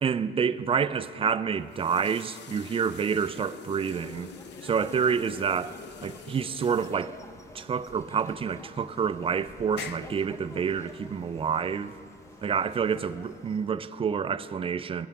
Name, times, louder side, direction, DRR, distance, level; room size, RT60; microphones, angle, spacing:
voice 1, 0.0-4.3 4.6-5.8 6.0-7.2 7.5-11.9 12.4-15.1, right 6 dB, 30° right, 0.3 m, -28 dB
sound 1, 1.4-13.8, left 8 dB, 60° left, 0.5 m, -47 dB
sound 2, 3.8-13.6, left 1 dB, 15° left, 0.7 m, -50 dB
16.5 x 5.6 x 4.8 m
cardioid pair, 90°, 20 cm